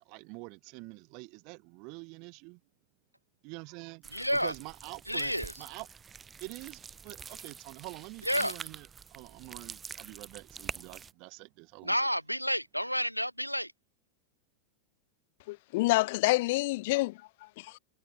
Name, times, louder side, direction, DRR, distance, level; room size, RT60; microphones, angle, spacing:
voice 1, 0.0-2.6 3.4-5.9 6.4-12.0, right 31 dB, 45° right, 4.7 m, -46 dB
sound 1, 4.0-11.1, right 6 dB, 20° right, 4.2 m, -46 dB
voice 2, 4.1-4.5 5.1-5.5 8.2-8.6 11.8-13.7, equal, 90° left, 1.7 m, -30 dB
voice 3, 15.5-17.8, left 21 dB, 50° left, 1.1 m, -28 dB
figure-of-eight pair, 90°, 0 cm